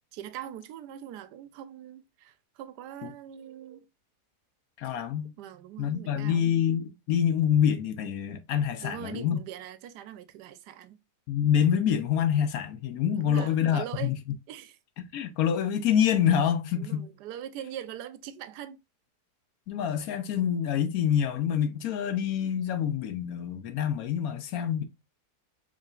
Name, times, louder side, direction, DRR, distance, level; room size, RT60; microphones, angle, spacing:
voice 1, 0.1-3.9 5.4-6.5 8.8-11.0 13.1-14.1 14.5-14.8 16.8-18.8, right 11 dB, 85° right, 1.2 m, -42 dB
voice 2, 4.8-5.3 5.8-9.4 11.3-14.2 15.1-17.1 19.7-24.8, left 9 dB, 70° left, 1.0 m, -26 dB
4.8 x 3.0 x 2.3 m
omnidirectional pair, 1.7 m